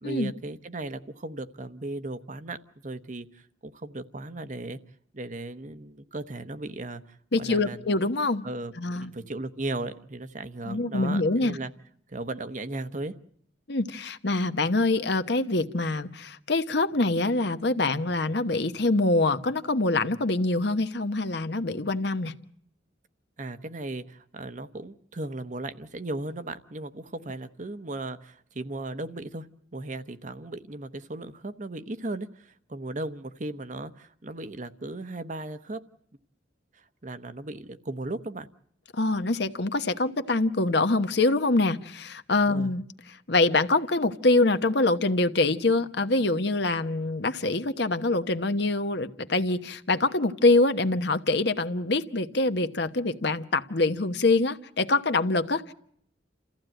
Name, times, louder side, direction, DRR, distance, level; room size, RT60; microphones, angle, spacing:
voice 1, 0.0-4.8 5.1-7.8 8.4-11.7 12.1-13.1 23.4-29.5 29.7-35.8 36.7-38.5 42.5-42.7, right 2 dB, 40° right, 10 dB, 1.0 m, -36 dB
voice 2, 7.3-8.5 8.8-9.1 10.6-11.6 13.7-22.3 38.9-42.8 43.3-55.7, left 2 dB, 65° left, 10 dB, 1.1 m, -25 dB
28.5 x 15.0 x 9.1 m, 0.68 s
head